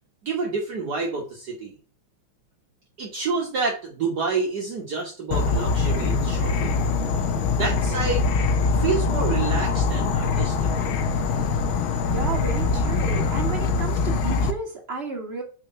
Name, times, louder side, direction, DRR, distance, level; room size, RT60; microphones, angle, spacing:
voice 1, 0.2-1.7 3.0-6.8 7.5-8.3 8.7-10.7, right 4 dB, 55° right, -1 dB, 1.8 m, -28 dB
Insect / Frog, 5.3-14.5, left 4 dB, 75° left, 1.7 m, -23 dB
voice 2, 12.1-15.4, right 4 dB, 30° right, 1 dB, 2.3 m, -32 dB
6.1 x 4.6 x 5.5 m, 0.38 s
omnidirectional pair, 2.2 m